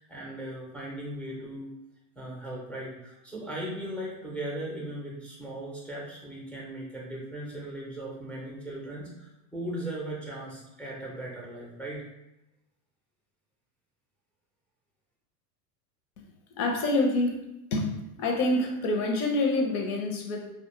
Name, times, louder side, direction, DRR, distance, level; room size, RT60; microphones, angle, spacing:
voice 1, 0.0-1.7 2.2-12.0, right 1 dB, 5° left, -4 dB, 0.4 m, -38 dB
voice 2, 16.6-17.4 17.7-17.9 18.2-20.5, left 2 dB, 65° left, 2 dB, 0.8 m, -26 dB
2.3 x 2.1 x 3.0 m, 0.91 s
supercardioid pair, 115°, 48 cm